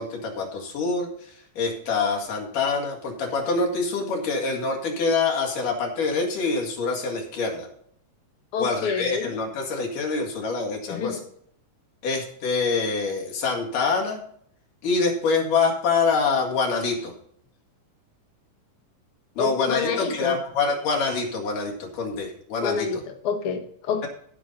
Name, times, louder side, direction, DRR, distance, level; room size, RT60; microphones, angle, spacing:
voice 1, 0.0-7.7 8.6-11.2 12.0-14.2 14.8-17.1 19.4-22.9, left 4 dB, 80° left, 0 dB, 3.7 m, -25 dB
voice 2, 8.5-9.3 10.9-11.2 19.4-20.4 22.6-24.1, left 6 dB, 55° left, 5 dB, 1.9 m, -28 dB
16.0 x 6.0 x 3.9 m, 0.64 s
omnidirectional pair, 3.7 m